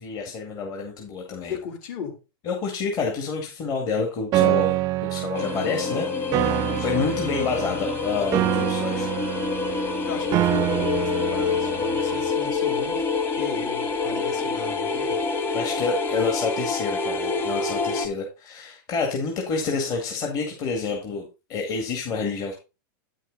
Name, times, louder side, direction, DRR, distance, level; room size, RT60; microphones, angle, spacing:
voice 1, 0.0-1.6 2.4-4.8 5.1-9.1 15.5-22.5, left 4 dB, 35° left, 2.1 m, -28 dB
voice 2, 1.5-2.2 10.0-15.3, left 6 dB, 55° left, 3.3 m, -36 dB
Piano, 4.3-12.3, right 16 dB, 30° right, 0.3 m, -26 dB
sound 1, 5.3-18.1, left 4 dB, 20° left, 1.3 m, -27 dB
9.3 x 6.4 x 3.9 m
supercardioid pair, 140°, 12 cm